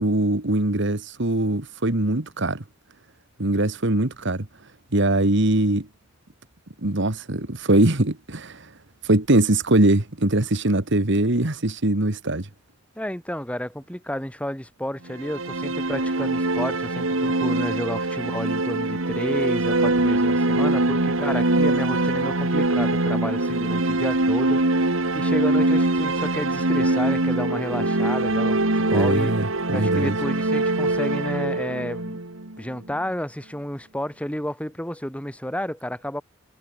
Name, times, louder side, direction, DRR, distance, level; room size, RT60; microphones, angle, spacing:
voice 1, 0.0-2.6 3.4-4.5 4.9-5.9 6.8-8.7 9.0-12.5 28.9-30.2, right 1 dB, 65° right, 2.1 m, -22 dB
voice 2, 13.0-29.3 29.7-32.2 32.6-36.2, equal, 5° left, 8.0 m, -31 dB
sound 1, 15.1-33.0, right 2 dB, 85° right, 2.6 m, -23 dB
head